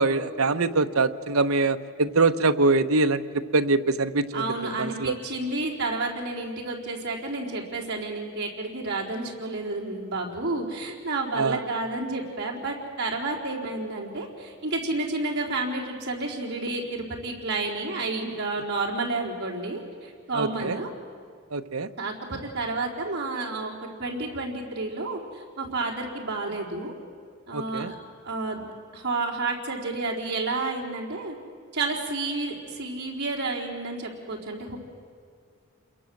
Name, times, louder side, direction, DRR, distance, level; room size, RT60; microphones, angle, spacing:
voice 1, 0.0-5.1 11.4-11.6 20.3-20.8 21.5-21.9 27.5-27.9, right 3 dB, 80° right, 8 dB, 1.0 m, -24 dB
voice 2, 4.3-20.9 22.0-23.7 24.0-26.9 27.5-27.9 28.2-28.7 28.9-31.4 31.7-34.8, right 3 dB, 50° right, -2 dB, 4.1 m, -30 dB
28.0 x 22.5 x 7.8 m, 2.2 s
head